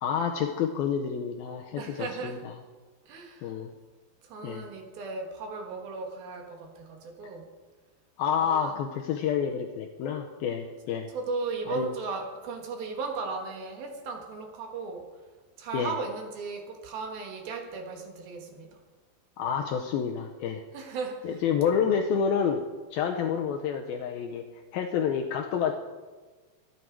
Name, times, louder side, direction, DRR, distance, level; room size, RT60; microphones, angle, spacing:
voice 1, 0.0-2.5 3.4-3.7 4.4-4.7 8.2-11.1 11.7-11.9 15.7-15.9 19.4-20.6 21.2-22.6 22.9-24.4 24.7-25.7, left 7 dB, 80° left, 3 dB, 2.2 m, -28 dB
voice 2, 1.8-2.4 3.1-3.5 4.2-7.5 8.4-8.8 11.1-15.0 15.6-18.7 20.7-21.3, right 4 dB, 65° right, 3 dB, 3.2 m, -36 dB
23.0 x 9.8 x 4.7 m, 1.4 s
omnidirectional pair, 5.1 m